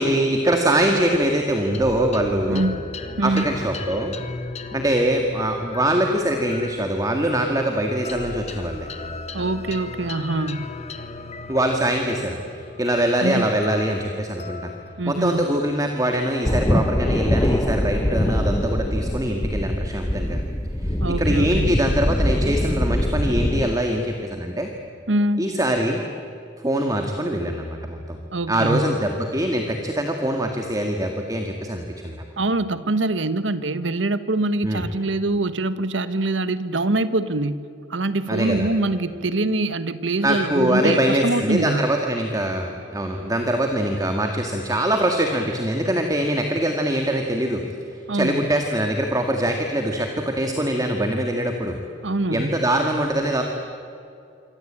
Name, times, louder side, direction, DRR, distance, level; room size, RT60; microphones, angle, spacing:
voice 1, 0.0-2.7 3.2-4.1 4.7-8.9 11.5-14.7 15.1-20.4 20.8-24.7 25.4-26.0 26.6-28.2 28.5-32.2 34.6-34.9 38.3-38.7 40.2-47.6 47.9-51.8 52.3-53.4, right 1 dB, 20° right, 3 dB, 2.0 m, -23 dB
sound 1, 1.7-16.4, left 3 dB, 35° left, 1.6 m, -37 dB
voice 2, 2.5-2.8 3.2-3.5 9.3-10.7 13.2-13.5 15.0-15.5 21.0-21.7 25.1-25.5 28.3-29.0 32.4-37.6 37.9-41.8 48.1-48.4 52.0-52.6, right 2 dB, 85° right, 13 dB, 1.3 m, -24 dB
sound 2, 16.4-23.7, left 1 dB, 20° left, 1.0 m, -23 dB
27.0 x 24.5 x 8.9 m, 2.7 s
head